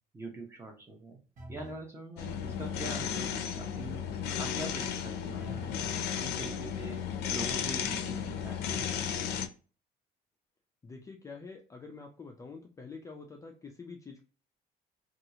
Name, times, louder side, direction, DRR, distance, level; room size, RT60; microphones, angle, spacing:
voice 1, 0.1-1.2 1.5-4.0 4.3-7.0 7.3-9.0, right 2 dB, 15° right, 1 dB, 0.8 m, -44 dB
sound 1, 1.4-1.9 5.4-5.9 7.5-8.1 8.6-9.1, right 1 dB, 55° right, 1.0 m, -47 dB
sound 2, 2.2-9.5, left 8 dB, 90° left, 0.4 m, -34 dB
voice 2, 10.8-14.2, left 4 dB, 20° left, 2 dB, 0.3 m, -46 dB
2.8 x 2.4 x 2.7 m, 0.37 s
cardioid pair, 135°, 17 cm